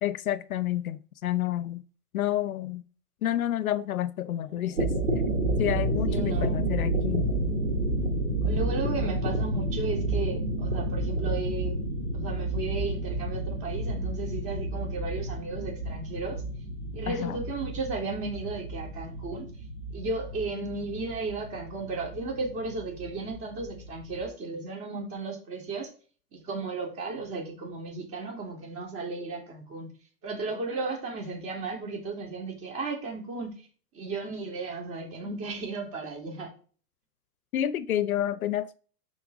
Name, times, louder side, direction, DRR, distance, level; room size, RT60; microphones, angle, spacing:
voice 1, 0.0-1.8 2.1-2.8 3.2-4.9 5.6-7.3 17.1-17.4 37.5-38.8, left 12 dB, 60° left, 0.7 m, -29 dB
sound 1, 4.6-24.3, right 1 dB, 85° right, 2.3 m, -30 dB
voice 2, 6.1-6.6 8.4-11.8 12.1-16.4 16.9-19.5 19.9-25.9 26.3-29.9 30.2-33.6 33.9-36.5, right 3 dB, 30° right, 3.4 m, -34 dB
11.5 x 4.6 x 3.8 m
figure-of-eight pair, 110°, 48 cm